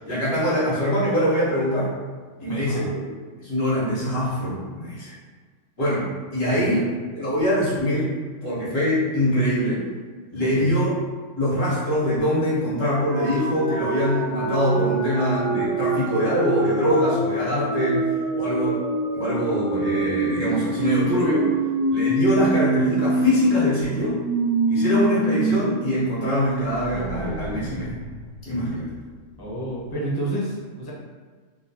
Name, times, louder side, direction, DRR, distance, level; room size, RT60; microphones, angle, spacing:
voice 1, 0.1-1.9 2.4-3.1 3.4-5.1 5.8-6.8 7.1-8.1 8.4-9.8 10.3-11.0 11.4-18.0 18.3-18.8 19.1-21.5 21.9-24.2 24.7-28.0 28.4-28.9, equal, 90° left, -9 dB, 1.7 m, -23 dB
voice 2, 2.5-2.9 6.5-6.9 10.4-10.7 29.4-30.9, right 1 dB, 25° left, -5 dB, 0.5 m, -30 dB
sound 1, 13.1-25.6 25.9-26.0 26.4-29.1, right 2 dB, 75° right, 0.9 m, -25 dB
3.8 x 2.3 x 2.7 m, 1.5 s
omnidirectional pair, 1.3 m